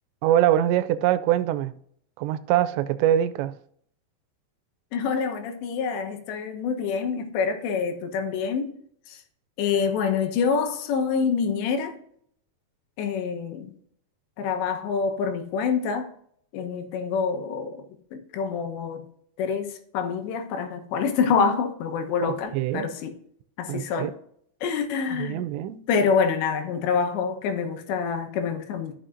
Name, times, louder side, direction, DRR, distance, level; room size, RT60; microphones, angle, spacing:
voice 1, 0.2-1.7 2.2-3.5 22.2-22.9 23.7-24.1 25.1-25.8, right 12 dB, 90° right, 2.9 m, -24 dB
voice 2, 4.9-8.8 9.1-9.2 9.6-12.0 13.0-13.7 14.4-16.1 16.5-17.8 18.1-19.1 19.4-23.1 23.6-24.1 24.6-25.4 25.9-28.9, left 6 dB, 85° left, 3.3 m, -26 dB
13.5 x 6.2 x 2.5 m
omnidirectional pair, 5.0 m